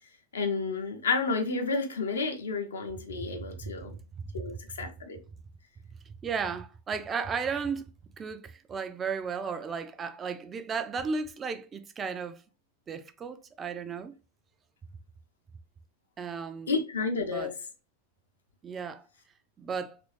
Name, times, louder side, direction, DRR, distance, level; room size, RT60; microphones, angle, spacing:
voice 1, 0.3-3.9 4.3-5.2 16.7-17.5, left 4 dB, 70° left, 0.7 m, -31 dB
voice 2, 3.3-3.7 4.2-4.4 6.2-7.9 8.2-12.4 12.9-14.1 16.2-16.7 17.3-17.5 18.6-19.1 19.6-20.0, right 5 dB, 20° right, 0.3 m, -34 dB
3.0 x 2.6 x 3.1 m
figure-of-eight pair, 90°, 0 cm